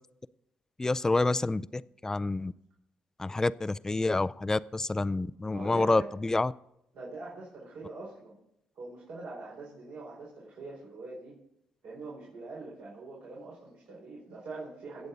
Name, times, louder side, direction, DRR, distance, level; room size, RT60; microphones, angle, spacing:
voice 1, 0.8-2.5 3.2-6.5, left 2 dB, 15° left, 17 dB, 0.4 m, -28 dB
voice 2, 5.5-6.1 6.9-8.4 8.7-11.3 11.8-15.1, right 3 dB, 70° right, -5 dB, 4.7 m, -43 dB
23.5 x 8.0 x 4.0 m, 0.80 s
cardioid pair, 85°, 3 cm